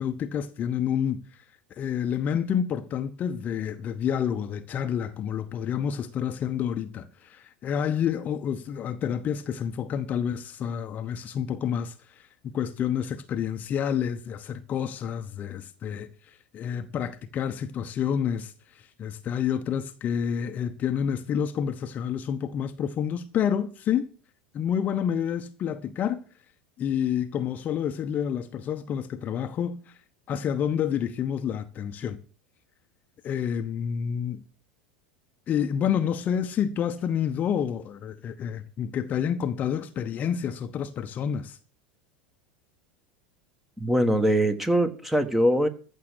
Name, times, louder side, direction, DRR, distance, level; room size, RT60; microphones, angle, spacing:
voice 1, 0.0-1.4 1.7-24.1 24.5-26.2 26.8-30.0 30.3-32.2 33.2-34.4 35.5-41.6, left 8 dB, 35° left, 0.9 m, -29 dB
voice 2, 43.8-45.7, equal, 5° right, 1.5 m, -22 dB
14.5 x 6.6 x 6.4 m
hypercardioid pair, 85°, 5 cm